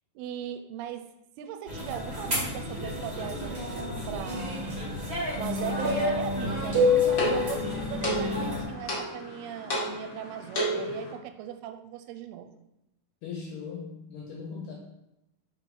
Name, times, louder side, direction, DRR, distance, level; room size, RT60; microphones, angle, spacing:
voice 1, 0.2-1.1 1.4-4.8 5.4-6.8 7.2-12.5, right 10 dB, 85° right, 8 dB, 2.4 m, -38 dB
sound 1, 1.7-8.6, left 2 dB, 45° right, 0.7 m, -29 dB
sound 2, 6.5-11.1, right 1 dB, 45° left, 1.1 m, -33 dB
voice 2, 13.2-14.7, left 5 dB, 70° left, -1 dB, 2.1 m, -39 dB
5.6 x 4.8 x 5.3 m, 0.89 s
omnidirectional pair, 4.7 m